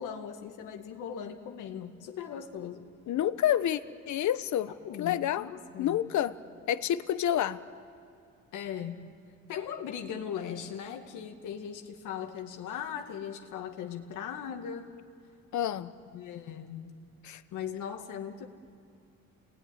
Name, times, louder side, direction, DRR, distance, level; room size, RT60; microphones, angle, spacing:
voice 1, 0.0-2.9 4.8-6.0 8.5-9.1 9.5-15.0 16.1-16.9 17.5-18.5, left 8 dB, 85° left, 4 dB, 2.1 m, -39 dB
voice 2, 3.1-3.8 4.1-4.7 5.0-5.5 5.8-6.3 6.7-7.6 15.5-15.9 17.2-17.4, left 11 dB, 70° left, 13 dB, 1.1 m, -28 dB
30.0 x 20.0 x 9.9 m, 2.5 s
cardioid pair, 90°, 30 cm